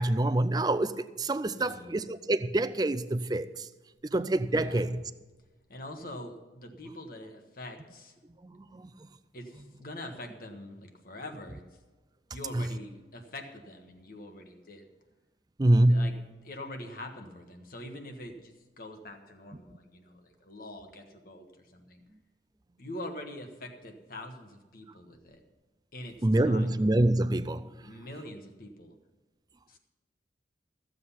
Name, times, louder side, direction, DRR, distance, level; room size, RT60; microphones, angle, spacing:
voice 1, 0.0-3.7 4.1-5.0 8.4-8.9 12.5-12.7 15.6-16.1 26.2-27.7, right 1 dB, 20° right, 0.4 m, -26 dB
voice 2, 1.5-2.0 4.5-4.9 5.7-8.1 9.3-11.6 12.3-14.8 15.8-22.0 22.8-25.4 25.9-26.7 27.8-28.9 29.7-29.8, left 1 dB, 50° left, 1.5 m, -44 dB
14.5 x 7.8 x 5.7 m
head